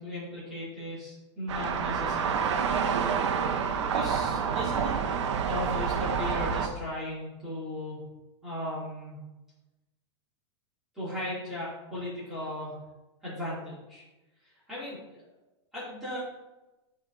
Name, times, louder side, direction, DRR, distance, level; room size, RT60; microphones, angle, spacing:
voice 1, 0.0-2.4 3.8-4.9 5.4-8.0 8.4-9.2 10.9-12.7 13.2-14.0 14.7-15.2 15.7-16.2, left 1 dB, ahead, -12 dB, 2.1 m, -37 dB
sound 1, 1.5-6.7, right 6 dB, 75° right, 0.8 m, -28 dB
8.9 x 3.4 x 3.9 m, 1.1 s
supercardioid pair, 175°, 15 cm